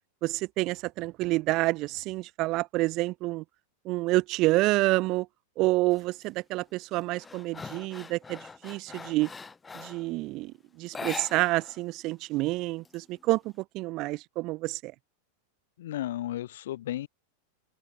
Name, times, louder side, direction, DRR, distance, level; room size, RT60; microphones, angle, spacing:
voice 1, 0.2-3.4 3.8-5.3 5.6-9.3 9.7-14.9, right 20 dB, 40° right, 0.5 m, -28 dB
sound 1, 5.9-6.3 6.7-10.1 10.9-11.8 12.1-12.2 12.6-13.5, left 4 dB, 15° left, 2.8 m, -42 dB
voice 2, 15.8-17.1, left 13 dB, 55° left, 0.4 m, -34 dB
open air
figure-of-eight pair, 90°, 0 cm